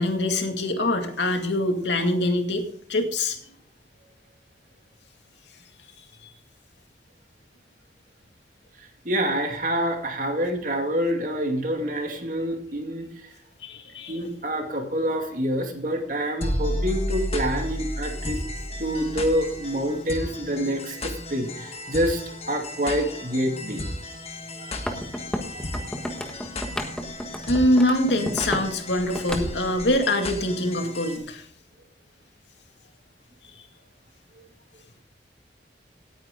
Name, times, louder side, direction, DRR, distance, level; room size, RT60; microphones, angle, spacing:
voice 1, 0.0-2.6 2.9-3.4 6.2-6.3 13.6-14.2 24.2-24.9 27.5-31.4, left 1 dB, 90° left, 5 dB, 2.3 m, -24 dB
voice 2, 8.8-13.3 14.1-18.4 18.8-22.2 22.5-23.8 24.6-24.7 25.5-25.6, equal, 45° right, 4 dB, 2.4 m, -27 dB
sound 1, 16.4-31.2, left 1 dB, 35° left, 1.5 m, -33 dB
sound 2, 24.7-28.7 29.0-29.9, equal, 5° left, 1.3 m, -33 dB
18.0 x 9.5 x 3.8 m, 0.64 s
head